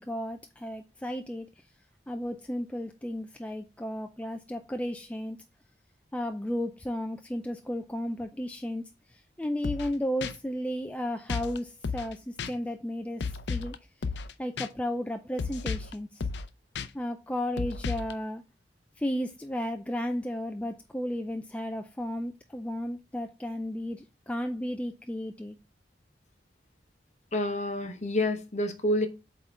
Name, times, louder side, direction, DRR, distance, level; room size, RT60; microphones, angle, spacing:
voice 1, 0.0-1.5 2.1-5.4 6.1-8.8 9.1-13.8 14.4-16.3 16.9-18.4 19.0-25.6, equal, 5° left, 0.3 m, -34 dB
sound 1, 9.6-9.9 10.2-10.3 11.3-11.6 11.8-12.1 12.4-12.5 13.2-13.7 14.0-14.3 14.6-14.7 15.4-15.9 16.2-16.5 16.7-16.9 17.6-18.1, left 5 dB, 70° left, 0.5 m, -33 dB
voice 2, 27.3-29.1, left 1 dB, 40° left, 0.9 m, -28 dB
8.0 x 3.7 x 3.3 m
head